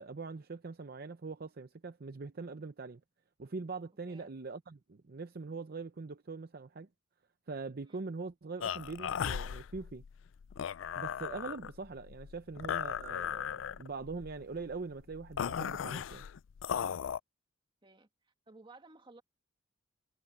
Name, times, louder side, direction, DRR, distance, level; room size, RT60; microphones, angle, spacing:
voice 1, 0.0-3.0 3.4-6.9 7.5-10.0 10.9-16.3, right 4 dB, 50° right, 0.6 m, -42 dB
sound 1, 8.6-17.2, left 8 dB, 70° left, 0.4 m, -37 dB
voice 2, 17.8-19.2, right 3 dB, 25° right, 2.0 m, -57 dB
head